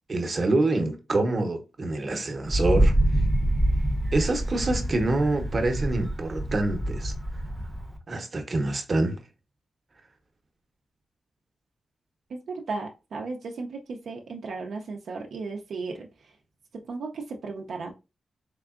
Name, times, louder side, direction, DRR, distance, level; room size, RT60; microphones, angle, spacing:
voice 1, 0.1-2.9 4.1-7.1 8.1-9.2, right 2 dB, 45° right, 0.8 m, -26 dB
Wind, 2.5-8.0, right 1 dB, ahead, 0.7 m, -26 dB
voice 2, 12.3-16.1 16.7-17.9, right 3 dB, 80° right, 0.5 m, -35 dB
3.6 x 3.3 x 2.4 m
cardioid pair, 90°, 0 cm